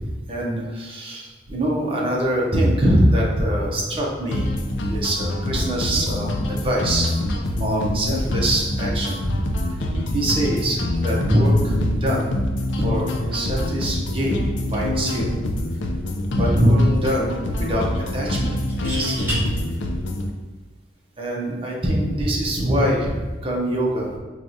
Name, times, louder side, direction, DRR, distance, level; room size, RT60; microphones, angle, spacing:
voice 1, 0.0-7.1 7.6-9.5 10.1-12.4 12.7-15.4 16.3-17.9 18.1-19.4 21.2-24.1, equal, 30° right, -3 dB, 0.7 m, -23 dB
sound 1, 4.3-20.3, left 1 dB, 75° left, 0.4 m, -25 dB
sound 2, 15.7-16.0 16.3-16.4 18.6-19.4 21.2-21.5, equal, 10° right, 1.4 m, -30 dB
4.6 x 2.4 x 2.7 m, 1.2 s
head